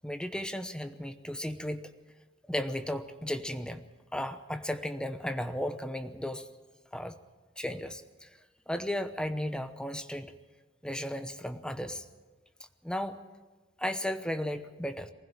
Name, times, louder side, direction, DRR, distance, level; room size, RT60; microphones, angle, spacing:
voice 1, 0.0-1.9 2.5-3.8 4.1-6.5 6.9-7.2 7.6-8.3 8.7-10.3 10.8-12.1 12.8-13.2 13.8-15.1, left 1 dB, 5° left, 9 dB, 0.9 m, -35 dB
23.5 x 15.5 x 7.4 m, 1.3 s
head